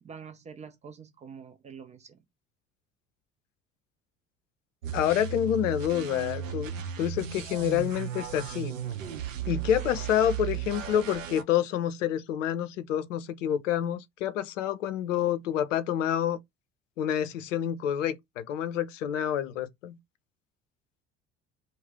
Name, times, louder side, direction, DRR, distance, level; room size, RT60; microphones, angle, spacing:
voice 1, 0.0-2.2, right 6 dB, 20° right, 0.3 m, -46 dB
sound 1, 4.8-11.4, right 8 dB, 80° right, 0.5 m, -35 dB
voice 2, 4.9-6.7 7.0-8.8 9.5-16.4 17.0-20.0, left 10 dB, 75° left, 0.5 m, -28 dB
2.4 x 2.0 x 3.3 m
figure-of-eight pair, 60°, 38 cm